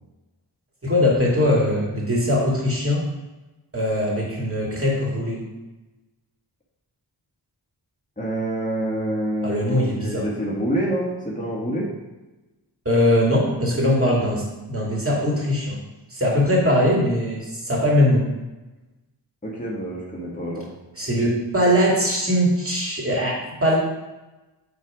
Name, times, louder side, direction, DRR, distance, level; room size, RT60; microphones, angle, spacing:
voice 1, 0.8-3.0 3.7-5.4 9.4-10.2 12.9-15.8 16.1-18.3 21.0-23.8, left 1 dB, 30° right, -3 dB, 2.3 m, -21 dB
voice 2, 8.2-11.9 19.4-20.7, right 1 dB, 15° left, -6 dB, 1.6 m, -27 dB
9.0 x 3.4 x 4.8 m, 1.1 s
wide cardioid pair, 45°, 44 cm